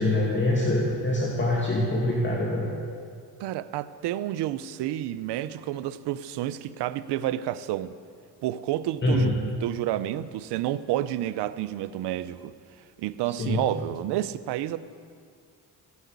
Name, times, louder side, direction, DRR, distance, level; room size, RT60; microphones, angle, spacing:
voice 1, 0.0-2.7 9.0-9.3 13.4-13.6, left 1 dB, 30° left, 2.5 m, -24 dB
voice 2, 3.4-7.9 8.4-12.5 13.0-14.8, right 13 dB, 80° right, 0.8 m, -30 dB
15.5 x 9.9 x 8.3 m
cardioid pair, 90°, 40 cm